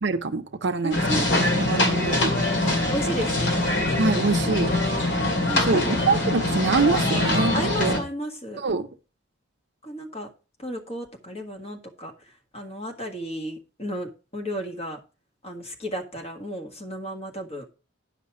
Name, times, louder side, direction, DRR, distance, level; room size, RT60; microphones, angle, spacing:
voice 1, 0.0-1.2 1.5-2.4 2.6-2.7 3.9-4.7 5.7-8.0 8.6-8.9, right 4 dB, 55° right, 0.6 m, -25 dB
voice 2, 0.8-1.4 2.9-4.1 5.5-6.0 7.5-8.6 9.8-10.3 10.6-12.1 12.5-15.0 15.4-17.6, equal, 30° left, 1.7 m, -33 dB
sound 1, 0.9-8.0, left 1 dB, 60° left, 2.3 m, -23 dB
10.0 x 5.6 x 4.8 m
head